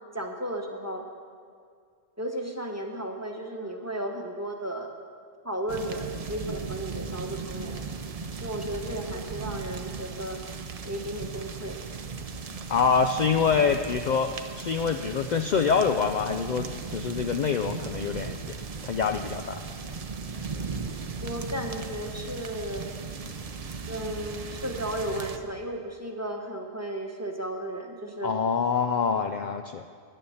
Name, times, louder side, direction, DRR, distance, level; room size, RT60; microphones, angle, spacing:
voice 1, 0.1-1.0 2.2-4.9 5.4-7.8 8.4-10.4 10.8-11.8 21.2-22.9 23.9-28.3, right 1 dB, 15° right, 2 dB, 1.0 m, -34 dB
sound 1, 5.7-25.4, right 4 dB, 40° right, 0.5 m, -37 dB
voice 2, 12.7-18.4 18.8-19.6 28.2-29.9, left 6 dB, 70° left, 6 dB, 0.4 m, -25 dB
10.5 x 10.0 x 7.1 m, 2.2 s
omnidirectional pair, 1.3 m